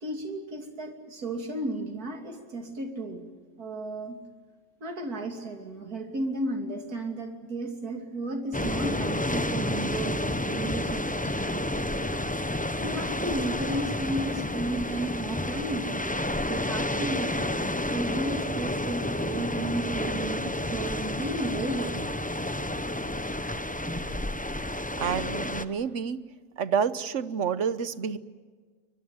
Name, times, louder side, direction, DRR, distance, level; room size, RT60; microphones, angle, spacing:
voice 1, 0.0-3.2 3.6-4.2 4.8-11.9 12.8-17.6 17.9-22.0, right 1 dB, 75° right, 4 dB, 3.4 m, -34 dB
sound 1, 8.5-25.6, left 1 dB, 10° left, 0.5 m, -30 dB
voice 2, 25.0-26.2 26.6-28.2, right 7 dB, 55° right, 14 dB, 1.2 m, -29 dB
24.0 x 21.5 x 9.5 m, 1.5 s
omnidirectional pair, 1.6 m